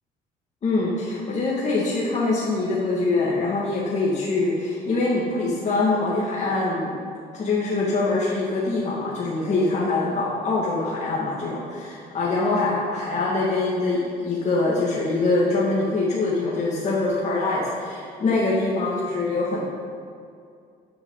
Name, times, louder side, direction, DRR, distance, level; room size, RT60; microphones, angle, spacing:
voice 1, 0.6-7.0 7.3-19.6, left 3 dB, 45° left, -6 dB, 2.1 m, -24 dB
12.5 x 8.2 x 4.0 m, 2.3 s
cardioid pair, 110°, 17 cm